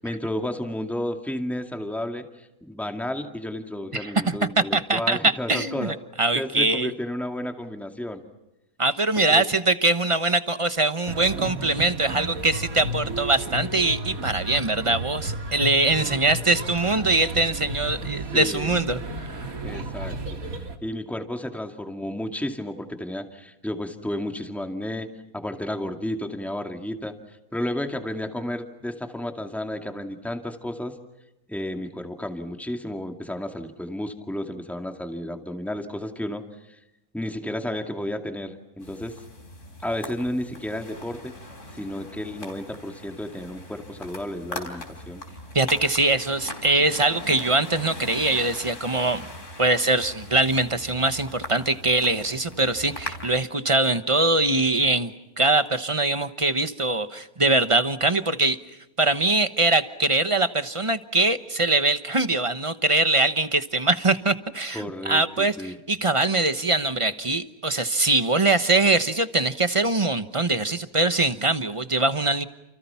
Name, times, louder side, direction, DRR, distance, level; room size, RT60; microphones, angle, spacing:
voice 1, 0.0-6.0 6.3-8.2 9.3-9.4 16.0-16.2 18.3-18.8 19.6-20.4 20.8-27.1 27.5-30.9 31.5-36.8 37.1-39.2 39.8-41.3 41.7-45.2 64.7-65.8, left 1 dB, ahead, 4 dB, 2.2 m, -32 dB
voice 2, 3.9-6.9 8.8-19.4 45.5-49.3 49.6-55.1 55.4-58.6 59.0-72.4, right 2 dB, 25° right, 11 dB, 1.0 m, -22 dB
sound 1, 11.1-20.8, right 1 dB, 75° right, 2.6 m, -33 dB
sound 2, 38.8-53.3, left 1 dB, 55° left, 4.3 m, -40 dB
30.0 x 29.0 x 5.8 m, 0.94 s
omnidirectional pair, 1.5 m